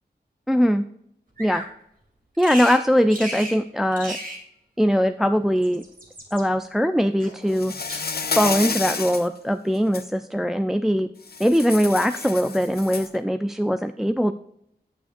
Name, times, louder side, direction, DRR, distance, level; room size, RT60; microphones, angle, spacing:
voice 1, 0.5-0.8 1.4-1.6 2.4-4.2 4.8-5.8 6.3-7.7 8.4-11.1 11.4-14.3, equal, ahead, 10 dB, 0.3 m, -21 dB
Bird vocalization bird call bird song, 1.4-1.7 2.4-2.8 3.1-3.6 3.9-4.4 5.4-6.4 7.2-7.6 7.9-8.4 8.9-9.2, right 1 dB, 50° right, 2.2 m, -36 dB
Insect, 7.5-9.3 9.7-10.0 11.3-13.2, left 5 dB, 60° left, 0.7 m, -30 dB
8.7 x 8.3 x 2.5 m, 0.74 s
wide cardioid pair, 55°, 18 cm